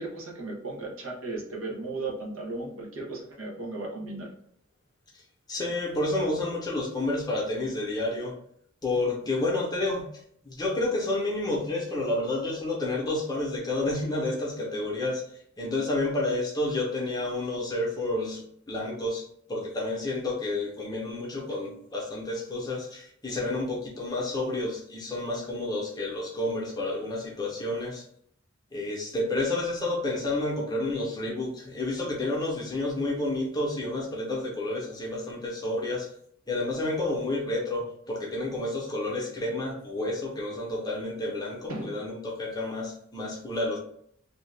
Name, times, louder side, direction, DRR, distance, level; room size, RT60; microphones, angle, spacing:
voice 1, 0.0-4.3 41.7-42.0, right 2 dB, 85° right, -3 dB, 0.9 m, -36 dB
voice 2, 5.5-8.3 8.8-15.2 15.6-28.0 28.7-36.1 36.5-43.8, left 2 dB, 20° left, -3 dB, 0.7 m, -30 dB
2.7 x 2.3 x 3.2 m, 0.67 s
head